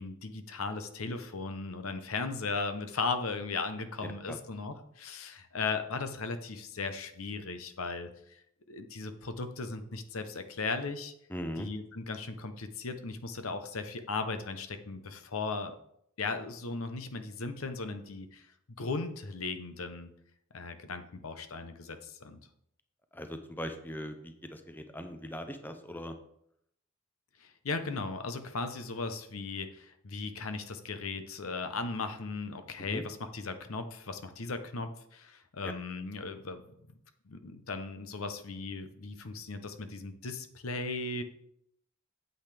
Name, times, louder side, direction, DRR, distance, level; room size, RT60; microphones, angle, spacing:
voice 1, 0.0-8.4 8.7-11.1 11.6-15.8 16.2-18.5 18.8-20.1 20.5-22.4 27.4-36.6 37.3-41.2, left 3 dB, 75° left, 9 dB, 0.8 m, -37 dB
voice 2, 11.3-11.7 23.1-26.1 32.9-33.0 35.6-35.7, equal, 10° left, 7 dB, 0.6 m, -40 dB
8.8 x 8.1 x 3.4 m, 0.72 s
head